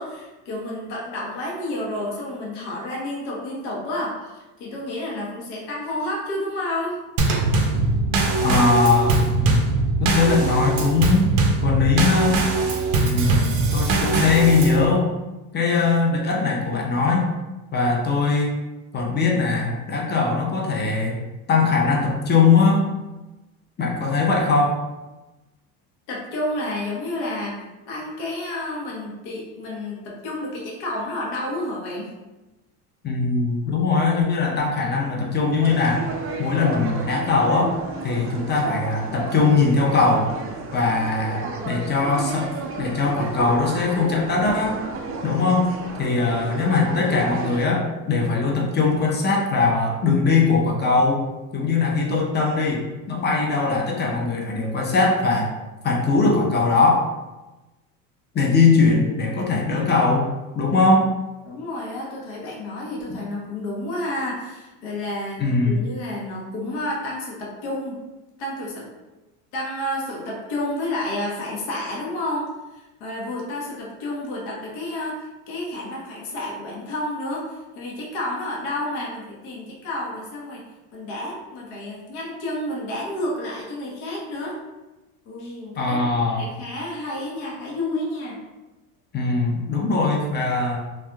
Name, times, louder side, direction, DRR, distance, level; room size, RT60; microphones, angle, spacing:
voice 1, 0.0-7.0 26.1-32.1 61.4-68.0 68.4-68.9 69.5-80.6 80.9-84.6 85.3-86.0 86.3-88.4, left 1 dB, 65° left, -3 dB, 1.1 m, -30 dB
Drum kit / Snare drum / Bass drum, 7.2-14.9, right 3 dB, 80° right, 0.7 m, -21 dB
voice 2, 8.4-9.6 10.0-11.3 11.6-12.4 13.0-15.1 15.5-17.3 17.7-18.6 18.9-22.9 23.8-24.8 33.0-36.1 36.4-37.8 38.0-40.3 40.7-42.5 42.8-44.8 45.2-45.7 46.0-51.2 51.5-55.5 55.8-57.1 58.3-60.3 60.5-61.1 65.4-65.8 85.8-86.5 89.1-90.8, left 4 dB, 25° left, -1 dB, 0.7 m, -20 dB
sound 1, 35.6-47.7, right 4 dB, 35° right, 0.4 m, -32 dB
3.3 x 2.7 x 2.2 m, 1.1 s
supercardioid pair, 100°, 42 cm